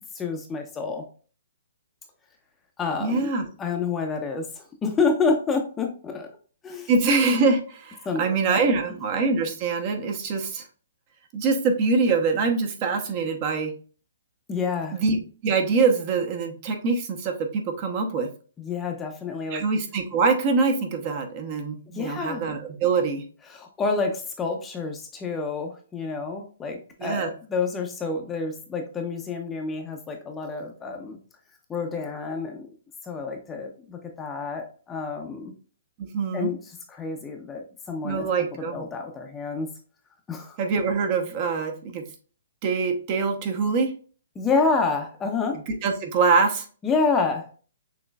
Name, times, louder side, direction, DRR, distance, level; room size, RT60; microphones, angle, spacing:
voice 1, 0.2-1.1 2.8-3.3 3.6-6.3 6.6-6.9 8.0-8.6 14.5-15.0 18.6-19.6 21.9-22.5 23.5-31.2 31.7-32.7 33.0-35.5 36.3-36.6 36.9-38.3 38.7-39.7 40.3-40.6 44.4-45.6 46.8-47.5, left 4 dB, 15° left, 3 dB, 0.6 m, -28 dB
voice 2, 3.0-3.5 6.9-10.6 11.3-13.7 14.9-18.3 19.5-23.2 27.0-27.3 36.0-36.5 38.0-38.9 40.6-42.0 42.6-43.9 45.8-46.7, right 4 dB, 35° right, 5 dB, 0.9 m, -24 dB
6.2 x 3.0 x 2.3 m, 0.40 s
hypercardioid pair, 150°, 0 cm